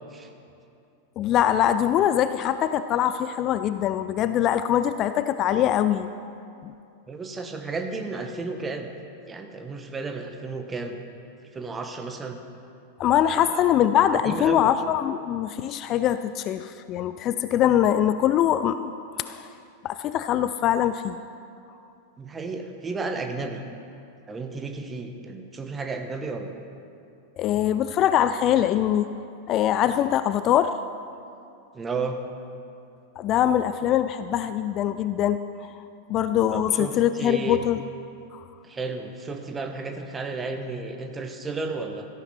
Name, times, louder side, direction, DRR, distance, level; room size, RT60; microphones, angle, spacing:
voice 1, 1.2-6.1 6.6-6.7 13.0-18.9 19.2-19.5 19.8-21.2 27.4-29.1 29.5-30.8 33.2-35.4 36.1-37.8 38.3-38.4, left 11 dB, 35° left, 12 dB, 0.4 m, -23 dB
voice 2, 7.1-8.9 9.3-11.0 11.5-12.4 13.2-13.6 14.1-14.7 22.2-23.6 24.3-26.5 31.7-32.2 36.5-37.6 38.6-42.1, right 3 dB, 15° right, 5 dB, 1.2 m, -33 dB
17.5 x 13.5 x 4.3 m, 2.6 s
figure-of-eight pair, 90°, 0 cm